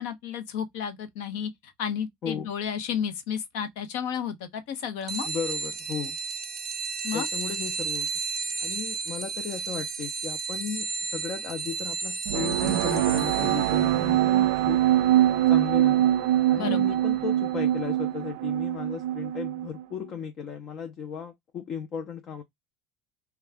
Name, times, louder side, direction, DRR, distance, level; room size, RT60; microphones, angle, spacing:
voice 1, 0.0-5.3 7.0-7.3 16.6-17.0, left 8 dB, 75° left, 0.8 m, -32 dB
sound 1, 5.1-17.2, right 5 dB, 25° right, 0.8 m, -34 dB
voice 2, 5.2-6.2 7.1-8.1 8.6-14.8 15.5-16.1 16.5-22.4, left 7 dB, 45° left, 0.6 m, -35 dB
sound 2, 12.3-19.8, right 13 dB, 75° right, 0.3 m, -23 dB
3.2 x 2.3 x 3.4 m
supercardioid pair, 100°, 0 cm